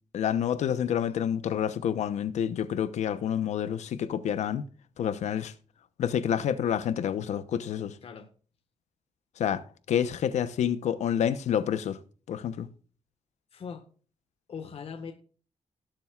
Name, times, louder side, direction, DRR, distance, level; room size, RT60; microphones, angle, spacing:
voice 1, 0.1-4.6 5.0-5.5 6.0-8.0 9.4-12.0 12.3-12.7, left 9 dB, 85° left, 0.9 m, -28 dB
voice 2, 13.5-13.9 14.5-15.1, left 6 dB, 60° left, 1.5 m, -40 dB
18.0 x 7.6 x 2.4 m
cardioid pair, 120°, 12 cm